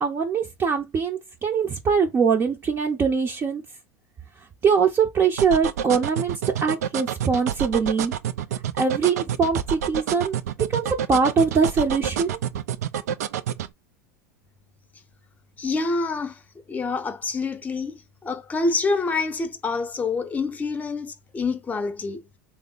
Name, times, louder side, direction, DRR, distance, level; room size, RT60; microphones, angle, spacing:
voice 1, 0.0-3.6 4.6-8.1 8.8-12.4, right 5 dB, 30° right, 0.6 m, -22 dB
sound 1, 5.4-13.7, right 9 dB, 80° right, 0.4 m, -28 dB
voice 2, 15.6-16.4 16.7-22.4, left 3 dB, 20° left, 0.7 m, -27 dB
3.4 x 2.0 x 3.8 m
hypercardioid pair, 95°, 8 cm